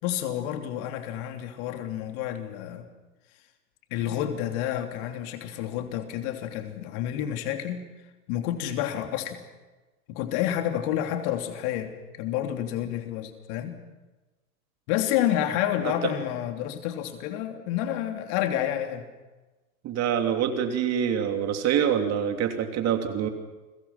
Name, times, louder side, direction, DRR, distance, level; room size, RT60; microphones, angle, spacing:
voice 1, 0.0-2.9 3.9-7.8 8.3-9.4 10.1-11.9 12.2-13.8 14.9-19.0, left 11 dB, 50° left, 6 dB, 3.2 m, -29 dB
voice 2, 19.8-23.3, right 8 dB, 35° right, 6 dB, 3.0 m, -26 dB
29.5 x 23.0 x 5.9 m, 1.2 s
hypercardioid pair, 105°, 44 cm